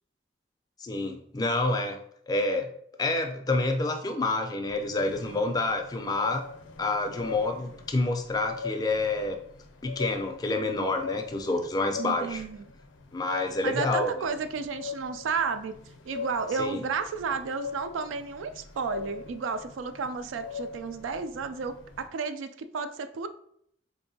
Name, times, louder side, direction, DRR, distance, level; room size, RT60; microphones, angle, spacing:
voice 1, 0.8-2.0 2.3-2.7 3.0-6.5 6.8-9.4 9.8-12.4 13.1-14.1 16.6-16.8, left 2 dB, 20° left, 5 dB, 0.3 m, -28 dB
sound 1, 4.6-22.1, left 5 dB, 80° left, 0.4 m, -42 dB
voice 2, 12.0-12.7 13.6-15.8 16.1-23.3, right 5 dB, 85° right, 10 dB, 0.3 m, -32 dB
4.3 x 2.7 x 2.7 m, 0.69 s
head